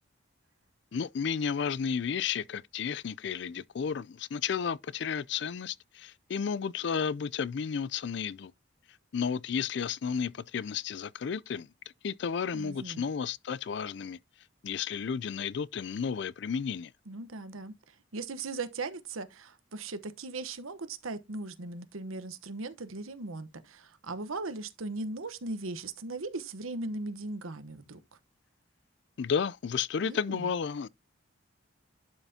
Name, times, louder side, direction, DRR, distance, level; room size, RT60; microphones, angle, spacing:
voice 1, 0.9-8.5 9.1-11.7 12.0-14.2 14.6-16.9 29.2-30.9, left 6 dB, 55° left, 0.4 m, -32 dB
voice 2, 12.5-13.0 17.1-28.0 30.0-30.5, right 3 dB, 85° right, 1.0 m, -38 dB
11.5 x 5.6 x 2.8 m
head